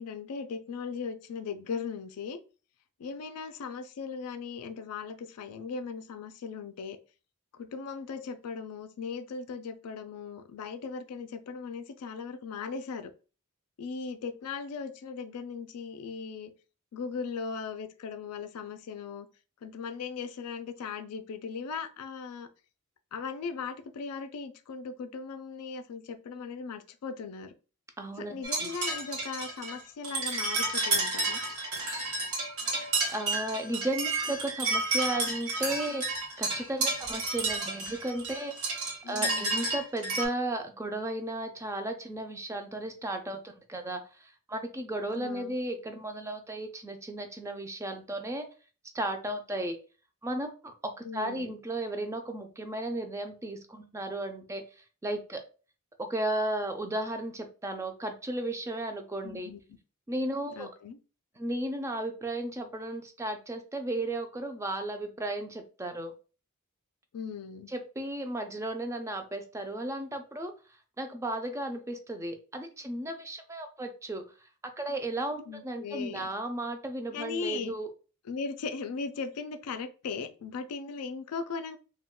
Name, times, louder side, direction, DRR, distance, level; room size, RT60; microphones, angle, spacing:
voice 1, 0.0-2.4 3.0-7.0 7.5-13.1 13.8-16.5 16.9-19.3 19.6-22.5 23.1-27.5 28.2-31.4 39.0-39.6 45.1-45.6 51.0-51.5 59.2-59.6 60.6-61.0 67.1-67.7 75.5-76.3 77.1-77.8 78.3-81.8, left 5 dB, 90° left, 0.4 m, -38 dB
voice 2, 28.0-28.7 33.1-48.5 48.9-49.8 50.2-50.5 50.8-54.6 55.0-55.4 56.0-59.5 60.1-60.7 61.4-66.1 67.7-70.5 71.0-74.2 74.8-77.9, right 1 dB, 15° right, 0.3 m, -34 dB
sound 1, 28.4-40.3, right 2 dB, 70° right, 1.0 m, -31 dB
2.2 x 2.2 x 3.5 m
head